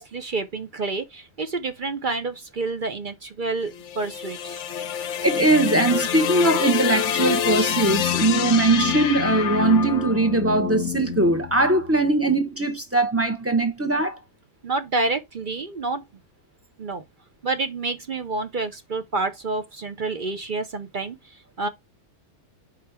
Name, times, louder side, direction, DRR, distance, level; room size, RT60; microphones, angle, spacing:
voice 1, 0.0-4.6 14.6-16.0 16.8-17.0 17.4-21.7, right 3 dB, 45° right, 0.7 m, -28 dB
sound 1, 3.7-12.0, left 9 dB, 65° left, 0.9 m, -27 dB
voice 2, 5.2-14.2, right 2 dB, 10° right, 0.9 m, -21 dB
5.1 x 4.9 x 4.4 m
omnidirectional pair, 1.5 m